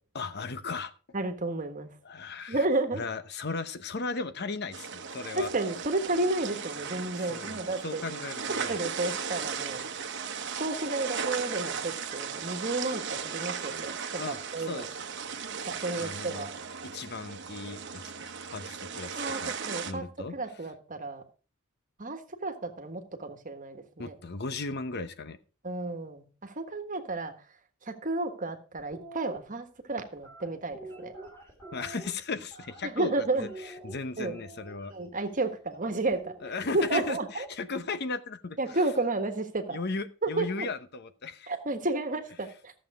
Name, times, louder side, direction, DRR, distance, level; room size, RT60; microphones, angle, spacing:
voice 1, 0.1-0.9 2.0-2.7 2.9-5.5 7.1-7.6 7.8-8.8 14.2-14.9 15.9-16.5 16.8-19.6 19.9-20.4 24.0-25.4 31.7-34.9 36.4-38.9 39.7-41.5, left 3 dB, 50° left, 0.8 m, -36 dB
voice 2, 1.1-1.9 2.5-3.0 5.4-8.0 8.7-9.8 10.6-14.0 14.3-14.9 15.7-16.5 19.2-19.4 19.7-20.0 20.3-21.2 22.0-24.2 25.6-27.3 27.8-31.1 32.8-33.5 34.2-34.4 34.9-36.3 36.7-37.5 38.6-39.8 40.2-40.7 41.5-42.7, right 2 dB, 35° right, 1.5 m, -32 dB
sound 1, 4.7-19.9, right 6 dB, 55° right, 1.0 m, -36 dB
sound 2, 28.8-29.4 30.2-33.1 33.4-34.9 36.1-37.5, right 2 dB, 10° left, 3.1 m, -47 dB
13.5 x 7.5 x 4.9 m
head